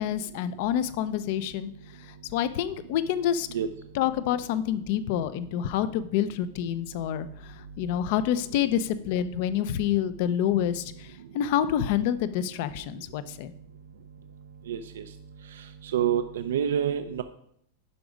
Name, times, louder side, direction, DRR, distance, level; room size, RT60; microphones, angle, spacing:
voice 1, 0.0-1.7 2.3-3.5 3.9-11.1 11.3-13.5, left 10 dB, 50° left, 13 dB, 0.6 m, -27 dB
voice 2, 14.7-15.0 15.9-17.2, right 9 dB, 90° right, 9 dB, 0.6 m, -27 dB
11.0 x 4.9 x 5.3 m, 0.69 s
supercardioid pair, 155°, 0 cm